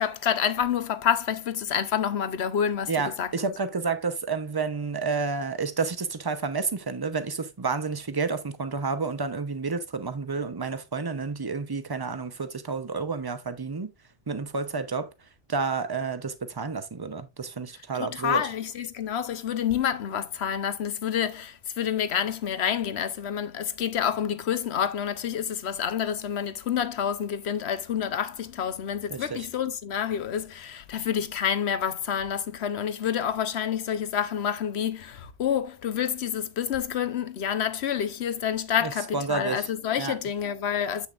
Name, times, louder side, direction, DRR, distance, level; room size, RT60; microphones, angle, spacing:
voice 1, 0.0-3.5 18.0-41.1, left 8 dB, 65° left, 1.1 m, -28 dB
voice 2, 2.9-13.9 14.3-15.1 15.5-18.4 29.1-29.5 38.8-39.7 40.0-40.1, right 4 dB, 25° right, 0.7 m, -30 dB
7.9 x 7.1 x 2.5 m
omnidirectional pair, 1.2 m